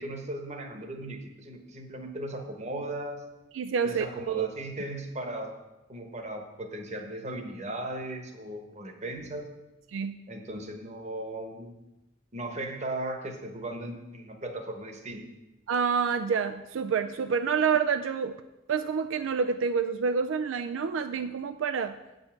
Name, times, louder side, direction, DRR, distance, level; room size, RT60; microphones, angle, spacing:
voice 1, 0.0-3.2 3.8-5.5 5.9-9.5 10.3-11.8 12.3-15.2, right 1 dB, 35° right, 5 dB, 1.1 m, -37 dB
voice 2, 3.5-4.5 9.9-10.2 15.7-18.4 18.7-22.0, right 6 dB, 80° right, 9 dB, 0.4 m, -28 dB
8.3 x 5.4 x 7.1 m, 1.0 s
head